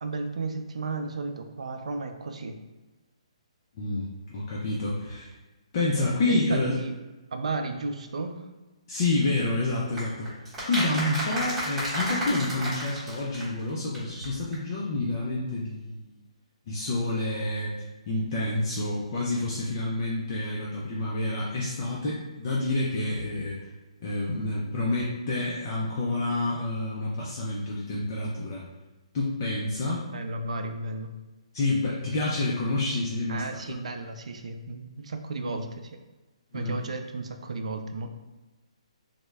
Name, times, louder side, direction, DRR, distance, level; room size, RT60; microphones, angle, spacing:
voice 1, 0.0-2.5 6.3-7.0 7.3-8.5 29.8-31.1 33.3-36.0 36.5-38.1, right 3 dB, 75° right, 6 dB, 0.4 m, -34 dB
voice 2, 3.8-5.3 5.7-6.8 8.9-10.3 10.7-16.1 16.7-17.7 18.1-23.6 24.0-28.6 29.1-30.0 31.5-33.8 35.4-35.6 36.5-36.8, left 2 dB, 35° left, -4 dB, 0.5 m, -28 dB
sound 1, 10.0-13.7 13.9-14.0 14.2-14.3 14.5-14.6, equal, 10° right, 0.9 m, -32 dB
3.5 x 2.1 x 3.3 m, 1.1 s
hypercardioid pair, 165°, 4 cm